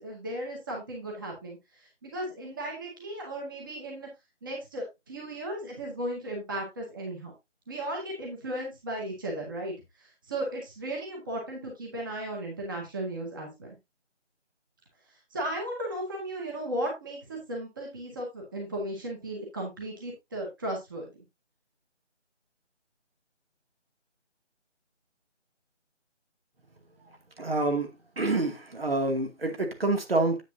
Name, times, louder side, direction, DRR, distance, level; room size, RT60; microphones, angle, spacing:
voice 1, 0.0-1.6 2.0-4.1 4.4-7.3 7.7-9.7 10.0-13.8 15.3-21.1, right 1 dB, 20° right, -1 dB, 1.9 m, -35 dB
voice 2, 27.4-27.9 28.2-30.4, right 2 dB, 55° right, 5 dB, 2.5 m, -27 dB
10.0 x 8.3 x 2.7 m, 0.21 s
figure-of-eight pair, 165°, 36 cm